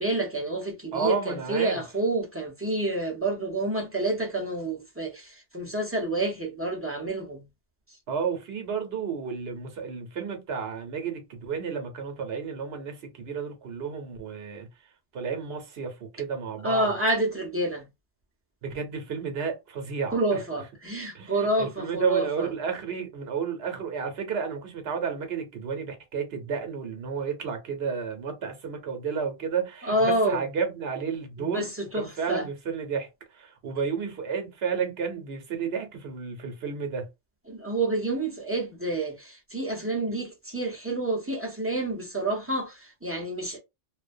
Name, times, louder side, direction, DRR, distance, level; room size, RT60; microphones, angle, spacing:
voice 1, 0.0-7.4 16.6-17.8 20.1-22.5 29.8-30.4 31.4-32.4 37.5-43.6, right 2 dB, 15° right, 0.6 m, -28 dB
voice 2, 0.9-1.8 8.1-14.7 15.1-16.9 18.6-20.4 21.1-37.1, right 6 dB, 65° right, 1.0 m, -32 dB
2.3 x 2.1 x 2.5 m
omnidirectional pair, 1.2 m